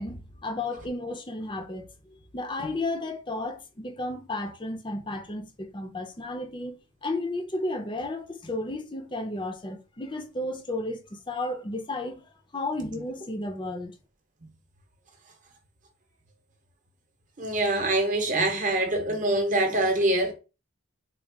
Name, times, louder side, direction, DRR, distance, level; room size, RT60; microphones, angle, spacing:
voice 1, 0.0-1.9 2.3-6.8 7.0-12.2 12.5-13.9, left 2 dB, 25° left, 0.6 m, -33 dB
voice 2, 17.4-20.3, right 1 dB, 40° right, 0.9 m, -24 dB
3.7 x 2.4 x 3.5 m
head